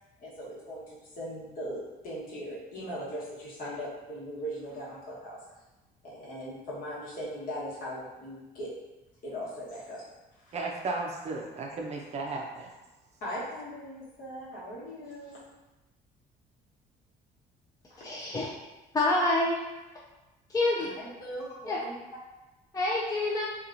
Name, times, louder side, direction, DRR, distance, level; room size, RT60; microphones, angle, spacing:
voice 1, 0.2-5.4 6.0-8.7 9.2-10.0 10.4-10.5 13.2-15.4 17.9-18.0 20.8-21.9, equal, 55° left, -7 dB, 1.2 m, -39 dB
voice 2, 10.5-12.7, right 3 dB, 40° right, 0 dB, 0.5 m, -34 dB
voice 3, 18.0-18.5 18.9-19.6 20.5-20.9 21.7-21.8 22.7-23.4, left 2 dB, 20° left, -5 dB, 0.4 m, -27 dB
2.8 x 2.4 x 2.5 m, 1.1 s
cardioid pair, 110°, 17 cm